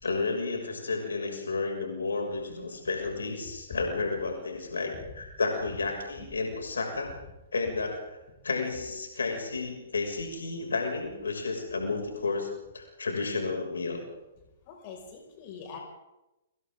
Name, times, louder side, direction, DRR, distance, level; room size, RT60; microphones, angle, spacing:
voice 1, 0.0-7.1 7.5-8.2 8.4-12.5 12.7-14.0, left 3 dB, 70° left, 2 dB, 6.4 m, -32 dB
voice 2, 14.7-15.8, left 7 dB, 40° left, 2 dB, 5.9 m, -43 dB
29.5 x 26.0 x 3.9 m, 0.98 s
figure-of-eight pair, 115°, 0 cm